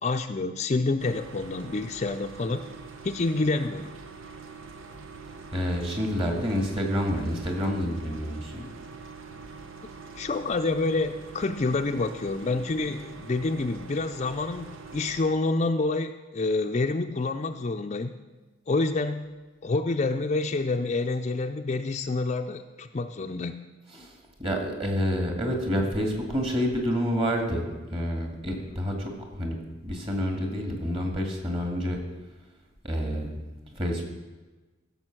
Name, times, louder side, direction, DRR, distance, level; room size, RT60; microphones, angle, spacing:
voice 1, 0.0-2.6 3.0-4.0 10.2-18.2 18.7-19.3 19.6-23.6, left 3 dB, 35° left, 6 dB, 0.4 m, -28 dB
sound 1, 1.0-15.3, right 4 dB, 90° right, 1.0 m, -44 dB
voice 2, 5.5-8.7 24.0-29.6 29.8-32.0 32.8-33.4 33.7-34.0, equal, 30° right, 2 dB, 2.1 m, -28 dB
15.5 x 7.1 x 6.0 m, 1.2 s
head